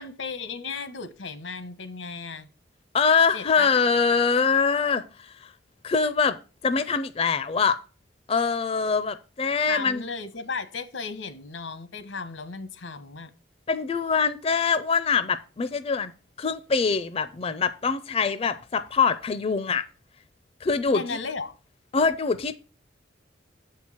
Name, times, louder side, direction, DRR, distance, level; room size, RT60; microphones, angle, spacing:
voice 1, 0.0-2.5 3.3-3.7 9.7-13.3 20.9-21.5, left 4 dB, 90° left, 1.1 m, -35 dB
voice 2, 2.9-5.5 5.8-6.4 6.6-7.8 8.3-10.0 13.7-16.1 16.4-19.8 20.6-21.0 21.9-22.5, left 5 dB, 30° left, 0.4 m, -24 dB
7.9 x 4.6 x 7.2 m
head